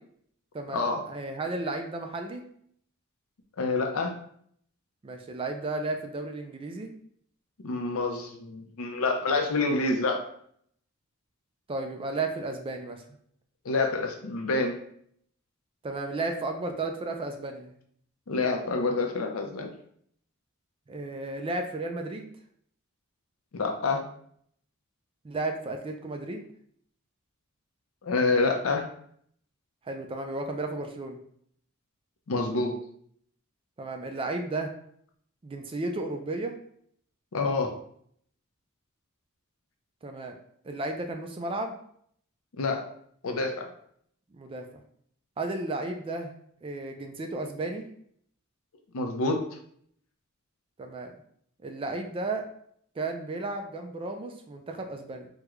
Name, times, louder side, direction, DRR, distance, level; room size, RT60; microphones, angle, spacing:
voice 1, 0.5-2.4 5.0-6.9 11.7-13.0 15.8-17.8 20.9-22.3 25.2-26.4 29.9-31.2 33.8-34.7 35.4-36.6 40.0-40.3 40.6-41.7 44.3-44.8 45.4-46.3 46.6-47.9 50.8-51.1 51.6-52.5 53.0-55.3, right 2 dB, 25° right, 4 dB, 0.3 m, -33 dB
voice 2, 3.6-4.2 7.6-10.3 13.6-14.8 18.3-19.7 23.5-24.0 28.0-28.9 32.3-32.8 37.3-37.7 42.6-42.9 43.2-43.7 48.9-49.6, left 3 dB, 75° left, 3 dB, 0.5 m, -27 dB
3.6 x 2.2 x 3.0 m, 0.65 s
head